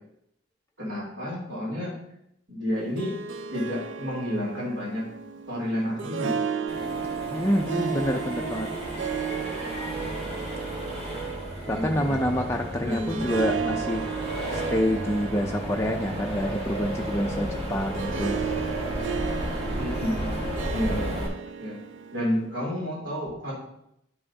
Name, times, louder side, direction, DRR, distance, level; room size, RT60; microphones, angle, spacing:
voice 1, 0.8-2.0 2.5-3.2 3.5-5.1 5.5-6.4 11.6-12.2 12.8-13.3 19.8-20.3 20.7-21.1 21.6-21.8 22.1-23.5, left 1 dB, 85° right, -3 dB, 2.9 m, -30 dB
Harp, 2.7-22.6, right 6 dB, 70° right, 0.4 m, -35 dB
Accelerating revving vroom, 6.7-21.3, right 1 dB, 35° right, 2.6 m, -33 dB
voice 2, 7.3-8.7 11.7-14.0 14.5-18.4, equal, 15° left, 0 dB, 0.5 m, -27 dB
12.0 x 5.5 x 2.8 m, 0.77 s
head